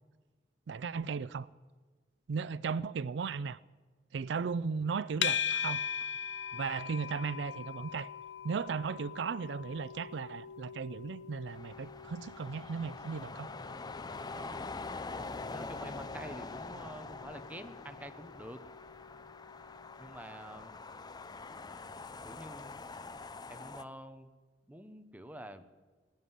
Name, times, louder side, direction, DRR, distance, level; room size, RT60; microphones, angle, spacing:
voice 1, 0.7-1.5 2.3-3.6 4.1-5.8 6.5-8.1 8.4-13.5, right 5 dB, 80° right, 0.4 m, -36 dB
sound 1, 5.2-22.4, left 8 dB, 80° left, 0.7 m, -42 dB
sound 2, 11.5-23.8, left 3 dB, 25° left, 0.5 m, -44 dB
voice 2, 14.3-14.7 15.5-18.6 20.0-20.7 22.2-22.8 23.5-24.3 24.7-25.6, right 1 dB, 10° right, 0.9 m, -48 dB
19.5 x 7.5 x 9.8 m
head